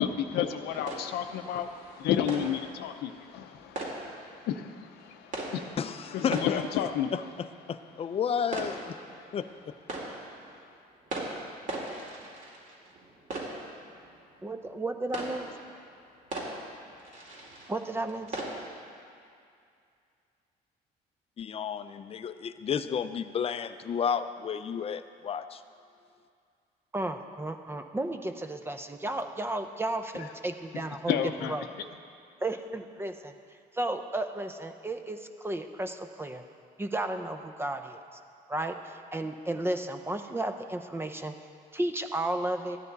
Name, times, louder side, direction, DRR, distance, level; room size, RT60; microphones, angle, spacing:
voice 1, 0.0-5.8 6.1-7.2 30.1-30.3 30.7-31.9, left 9 dB, 80° left, 8 dB, 0.6 m, -32 dB
sound 1, 0.7-18.8, right 2 dB, 50° right, 2.3 m, -41 dB
voice 2, 5.8-6.6 7.7-9.0 9.3-9.5 21.4-25.6, left 7 dB, 35° left, 11 dB, 0.5 m, -32 dB
voice 3, 14.4-15.5 17.7-18.4 26.9-31.2 31.5-31.7 32.4-33.3 33.7-36.4 36.8-38.0 38.5-41.3 41.7-42.8, right 2 dB, 15° right, 7 dB, 0.6 m, -33 dB
13.5 x 9.9 x 4.0 m, 2.4 s
cardioid pair, 110°, 17 cm